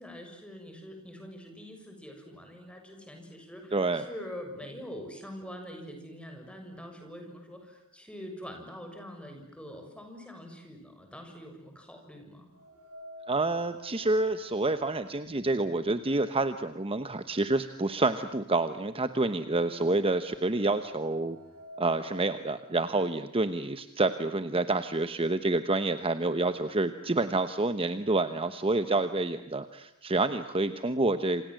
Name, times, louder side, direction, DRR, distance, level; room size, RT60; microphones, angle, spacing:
voice 1, 0.0-12.5, equal, 5° left, 4 dB, 6.8 m, -44 dB
voice 2, 3.7-4.0 13.3-21.4 21.8-31.4, right 2 dB, 25° right, 10 dB, 1.1 m, -28 dB
sound 1, 12.5-16.6 16.9-17.0 18.0-18.1 18.5-22.3, right 1 dB, 75° right, 6.3 m, -51 dB
27.5 x 27.5 x 7.7 m, 0.85 s
head